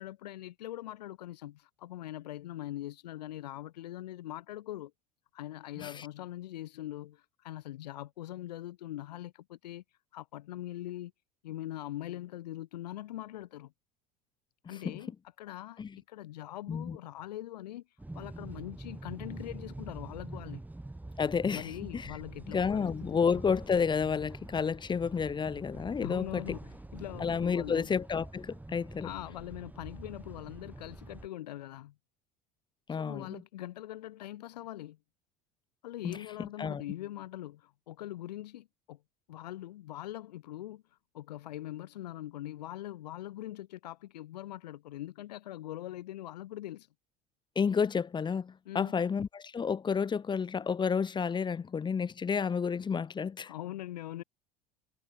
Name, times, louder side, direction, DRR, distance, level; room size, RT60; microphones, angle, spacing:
voice 1, 0.0-4.9 5.3-9.8 10.1-11.1 11.4-13.7 14.7-15.1 15.4-17.8 18.1-20.6 21.5-23.2 26.0-27.9 29.0-31.9 32.9-35.0 35.8-39.0 39.3-40.8 41.1-46.9 48.6-48.9 53.4-54.2, left 14 dB, 80° left, 3.3 m, -42 dB
voice 2, 14.7-15.0 15.8-16.0 16.7-17.0 21.2-22.1 22.5-26.4 27.2-29.1 32.9-33.4 36.0-36.8 47.6-53.5, left 6 dB, 20° left, 0.7 m, -31 dB
sound 1, 18.0-31.3, right 2 dB, 10° right, 1.8 m, -45 dB
hypercardioid pair, 70°, 21 cm